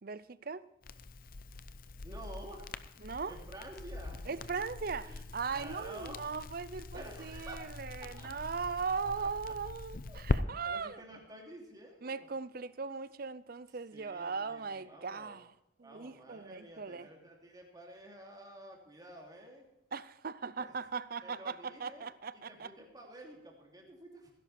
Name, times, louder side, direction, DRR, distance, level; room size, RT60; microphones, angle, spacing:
voice 1, 0.0-0.6 3.0-3.3 4.3-11.0 12.0-15.5 15.8-17.1 19.9-22.7, right 5 dB, 50° right, 0.6 m, -39 dB
Crackle, 0.8-10.4, left 3 dB, 45° left, 0.6 m, -41 dB
voice 2, 2.0-2.7 3.0-4.4 5.0-5.2 5.5-6.2 6.9-8.3 9.2-9.3 10.1-12.3 13.9-15.4 15.8-19.6 20.6-20.7 21.2-24.3, right 1 dB, 20° right, 2.9 m, -51 dB
17.5 x 11.0 x 4.4 m
head